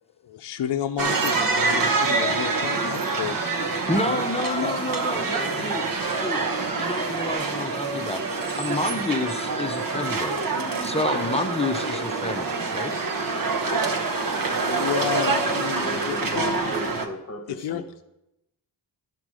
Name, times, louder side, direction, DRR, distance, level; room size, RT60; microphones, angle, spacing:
voice 1, 0.2-3.4 4.0-4.8 11.1-11.3 14.6-16.5 17.6-17.8, left 9 dB, 65° left, 6 dB, 0.6 m, -31 dB
sound 1, 1.0-17.1, right 4 dB, 50° right, 1.0 m, -26 dB
voice 2, 3.9-5.9 6.2-6.4 6.8-12.9, left 2 dB, 15° left, 6 dB, 0.6 m, -29 dB
voice 3, 14.4-14.8 15.2-18.0, left 2 dB, 35° left, 7 dB, 1.1 m, -37 dB
11.0 x 4.5 x 6.2 m, 0.88 s
wide cardioid pair, 100°, 43 cm